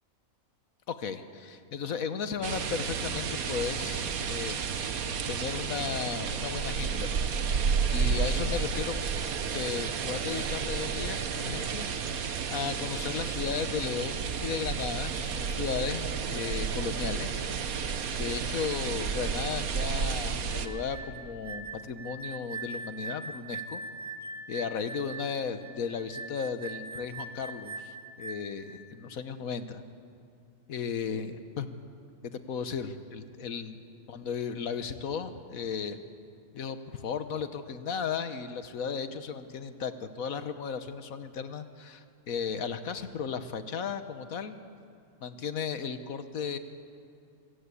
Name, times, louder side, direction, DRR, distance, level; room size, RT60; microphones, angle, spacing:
voice 1, 0.9-4.6 5.0-7.5 7.9-9.0 9.5-17.3 18.2-23.8 24.5-29.8 30.7-31.7 32.2-33.8 34.1-36.0 36.5-44.6 45.2-46.6, left 6 dB, 80° left, 10 dB, 1.5 m, -35 dB
sound 1, 2.4-20.7, right 6 dB, 85° right, 1.5 m, -31 dB
sound 2, 20.5-28.7, right 3 dB, 15° right, 1.2 m, -42 dB
25.5 x 16.0 x 8.4 m, 2.4 s
omnidirectional pair, 1.5 m